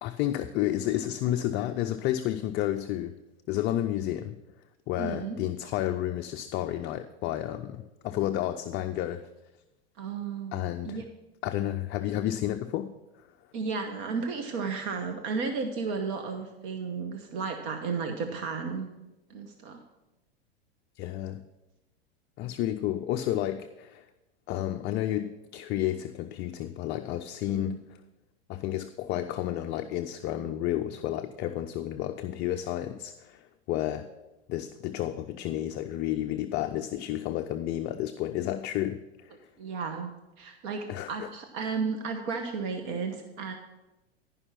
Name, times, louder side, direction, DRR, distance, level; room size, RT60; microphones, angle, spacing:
voice 1, 0.0-3.2 3.5-4.4 4.9-9.2 10.5-11.0 11.4-13.0 21.0-21.4 22.4-24.1 24.5-28.0 28.5-34.1 34.5-39.5 40.9-41.3 41.6-41.7, left 12 dB, 35° left, 8 dB, 0.4 m, -31 dB
voice 2, 5.0-5.4 10.0-10.6 10.8-11.0 13.5-18.9 19.3-19.8 27.5-27.8 39.6-40.1 40.4-43.6, right 5 dB, 50° right, 5 dB, 1.1 m, -33 dB
11.0 x 5.4 x 5.8 m, 0.99 s
hypercardioid pair, 100°, 32 cm